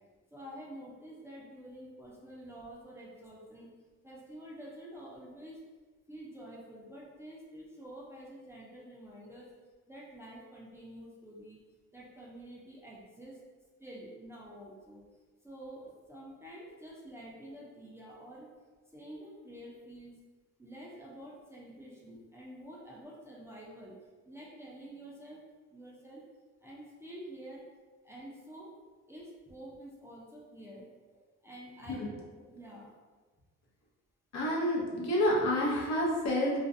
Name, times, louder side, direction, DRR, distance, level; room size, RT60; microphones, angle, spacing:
voice 1, 0.3-3.7 4.0-5.6 6.1-9.5 9.9-11.6 11.9-13.4 13.8-15.0 15.4-18.5 18.9-20.1 20.6-23.9 24.3-25.4 25.7-26.2 26.6-27.6 28.0-28.7 29.1-30.9 31.4-32.0 32.5-32.9, right 1 dB, 10° right, -6 dB, 0.5 m, -48 dB
voice 2, 34.3-36.6, left 1 dB, 60° left, -3 dB, 0.8 m, -29 dB
2.5 x 2.2 x 2.5 m, 1.4 s
cardioid pair, 90°, 30 cm